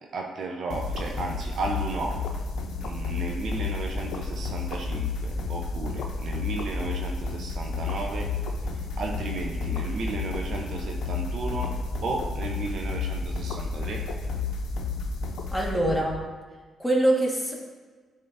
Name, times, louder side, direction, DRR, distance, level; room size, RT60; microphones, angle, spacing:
voice 1, 0.1-2.2 2.8-8.3 8.6-11.7 12.0-14.0, right 3 dB, 65° right, 1 dB, 0.7 m, -34 dB
sound 1, 0.7-16.2, left 4 dB, 75° left, 0.6 m, -31 dB
voice 2, 15.5-16.2 16.8-17.5, right 1 dB, 5° left, -2 dB, 1.6 m, -23 dB
10.5 x 3.6 x 2.7 m, 1.4 s
cardioid pair, 70°, 0 cm